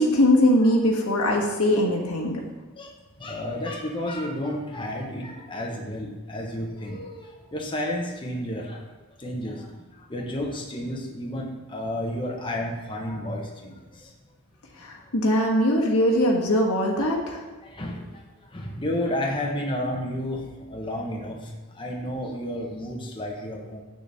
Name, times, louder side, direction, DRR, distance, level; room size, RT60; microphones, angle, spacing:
voice 1, 0.0-2.4 14.8-17.4, left 1 dB, 75° left, -1 dB, 1.4 m, -21 dB
voice 2, 2.8-8.8 9.2-14.1 17.6-18.2 18.5-20.4 20.7-23.8, left 1 dB, 25° left, -1 dB, 0.9 m, -31 dB
8.1 x 6.6 x 3.4 m, 1.2 s
head